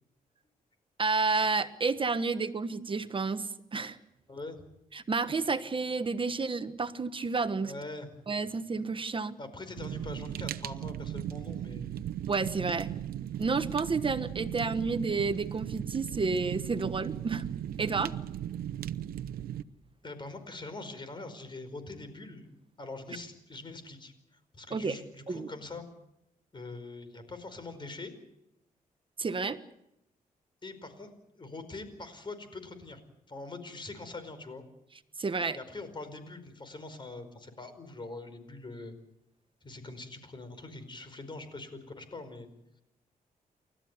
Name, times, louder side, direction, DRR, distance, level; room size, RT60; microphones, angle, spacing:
voice 1, 1.0-4.0 4.9-7.7 8.3-9.4 12.3-12.9 13.4-17.4 17.8-18.1 24.7-25.0 25.3-25.5 29.2-29.6 35.2-35.6, right 4 dB, 35° right, 11 dB, 1.2 m, -30 dB
voice 2, 4.3-4.6 7.6-8.1 9.4-12.0 20.0-22.5 22.8-25.9 26.5-28.1 30.6-31.1 31.3-33.0 33.3-34.6 35.5-38.9 39.6-42.5, left 2 dB, 30° left, 10 dB, 4.9 m, -43 dB
Fire, 9.8-19.6, right 11 dB, 90° right, 0.8 m, -37 dB
29.0 x 13.5 x 9.6 m, 0.84 s
cardioid pair, 90°, 15 cm